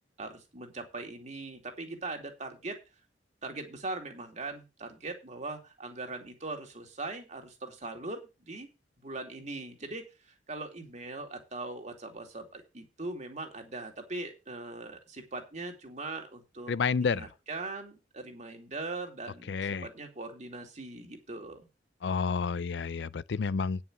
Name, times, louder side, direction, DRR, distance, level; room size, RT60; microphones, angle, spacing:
voice 1, 0.2-2.8 3.4-8.7 9.0-21.7, right 2 dB, 40° right, 2.5 m, -40 dB
voice 2, 16.7-17.2 19.5-19.9 22.0-23.8, left 5 dB, 75° left, 0.5 m, -30 dB
9.5 x 5.7 x 7.2 m
head